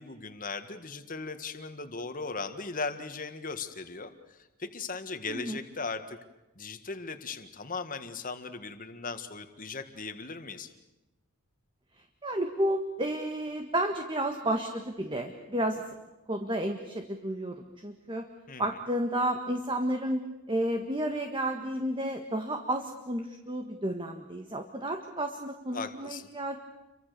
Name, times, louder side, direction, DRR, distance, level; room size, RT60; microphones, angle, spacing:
voice 1, 0.0-6.2 6.6-10.7 18.5-18.8 25.7-26.3, left 4 dB, 35° left, 9 dB, 1.8 m, -38 dB
voice 2, 5.3-5.6 12.2-15.8 16.3-17.6 17.8-18.2 18.6-20.2 20.5-26.6, right 1 dB, 20° right, 5 dB, 1.6 m, -31 dB
29.5 x 24.5 x 6.8 m, 1.0 s
head